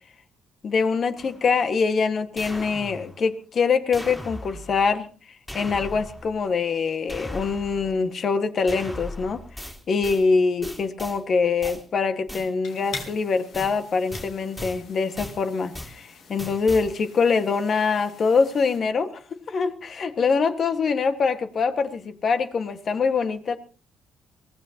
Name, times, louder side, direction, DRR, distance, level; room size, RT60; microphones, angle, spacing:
voice 1, 0.6-5.1 5.5-9.4 9.9-19.2 19.5-23.6, left 5 dB, 50° left, 1.7 m, -24 dB
sound 1, 1.2-1.6 2.4-3.3 3.9-4.9 5.5-6.4 7.1-8.0 8.7-10.3 10.6-11.2 11.6-11.8 12.3-12.5 12.9-13.2 13.5-13.8 14.1-14.8 15.2-15.4 15.7-16.0 16.4-16.9, equal, 10° left, 3.8 m, -38 dB
sound 2, 12.6-18.8, left 5 dB, 75° left, 4.1 m, -44 dB
23.0 x 17.0 x 2.9 m
cardioid pair, 90°, 0 cm